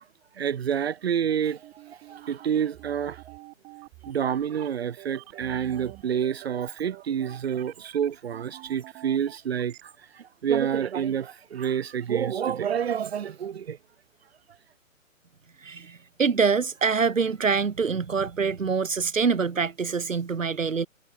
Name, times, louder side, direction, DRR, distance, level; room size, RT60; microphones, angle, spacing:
voice 1, 0.4-1.6 1.9-3.2 4.1-9.9 10.2-13.8, right 8 dB, 45° right, 1.7 m, -28 dB
sound 1, 1.6-9.8, right 23 dB, 15° right, 2.0 m, -47 dB
voice 2, 15.6-20.9, right 5 dB, 65° right, 2.6 m, -25 dB
figure-of-eight pair, 130°, 42 cm